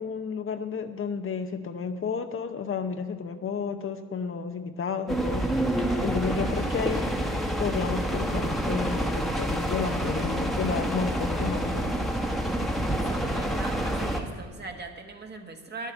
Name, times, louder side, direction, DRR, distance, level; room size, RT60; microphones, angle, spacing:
voice 1, 0.0-7.1 7.6-11.9, left 6 dB, 45° left, 8 dB, 0.8 m, -32 dB
sound 1, 5.1-14.2, right 1 dB, ahead, 1.3 m, -28 dB
voice 2, 12.7-15.9, right 3 dB, 35° right, 4 dB, 1.5 m, -41 dB
11.0 x 7.4 x 8.9 m, 1.5 s
cardioid pair, 90°, 30 cm